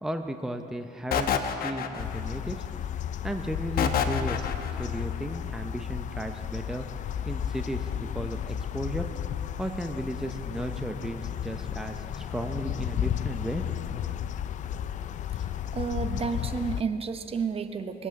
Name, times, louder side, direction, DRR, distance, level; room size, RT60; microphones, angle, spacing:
voice 1, 0.0-2.7 3.2-4.4 4.8-6.9 7.3-9.1 9.6-13.8, right 1 dB, 5° right, 6 dB, 0.7 m, -34 dB
sound 1, 1.1-2.4 3.8-4.9, left 7 dB, 60° left, 1.0 m, -27 dB
sound 2, 2.0-16.8, left 10 dB, 45° left, 0.4 m, -33 dB
voice 2, 15.4-18.1, right 5 dB, 35° right, 8 dB, 0.9 m, -31 dB
22.0 x 8.2 x 7.4 m, 2.9 s
cardioid pair, 110°, 17 cm